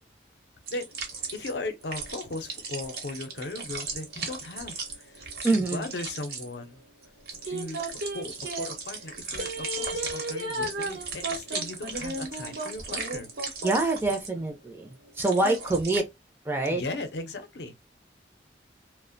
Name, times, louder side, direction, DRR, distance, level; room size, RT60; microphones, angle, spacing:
sound 1, 0.7-16.0, right 4 dB, 60° right, 0.8 m, -38 dB
voice 1, 1.3-6.8 7.4-7.8 8.1-13.3 15.4-15.6 16.7-17.7, left 2 dB, 75° left, 0.6 m, -37 dB
voice 2, 5.4-5.9 10.6-10.7 13.6-16.0 16.5-16.8, right 2 dB, 15° right, 0.4 m, -26 dB
sound 2, 7.5-8.7 9.4-13.9 14.3-14.4, right 1 dB, 85° right, 0.9 m, -34 dB
2.4 x 2.1 x 2.5 m
head